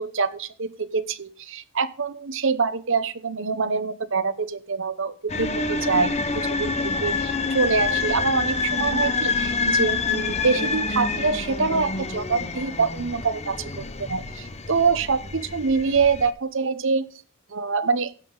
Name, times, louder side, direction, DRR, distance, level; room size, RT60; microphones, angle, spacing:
voice 1, 0.0-17.1 17.5-18.1, right 4 dB, 60° right, 13 dB, 0.9 m, -25 dB
sound 1, 5.3-16.3, left 4 dB, 30° left, 0.9 m, -27 dB
16.0 x 7.6 x 3.9 m, 0.41 s
head